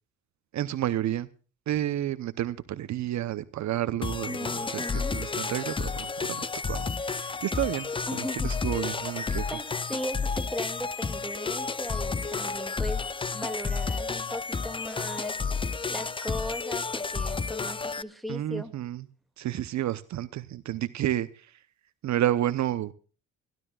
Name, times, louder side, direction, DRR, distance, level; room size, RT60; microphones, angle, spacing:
voice 1, 0.5-1.3 1.7-9.5 18.3-19.1 19.4-21.5 22.0-22.9, right 12 dB, 65° right, 13 dB, 0.9 m, -31 dB
sound 1, 4.0-18.0, left 4 dB, 15° left, 0.5 m, -31 dB
voice 2, 4.3-5.2 8.1-8.7 9.5-13.1 13.3-18.7, equal, ahead, 5 dB, 2.3 m, -38 dB
26.0 x 12.5 x 2.4 m, 0.37 s
cardioid pair, 90°, 30 cm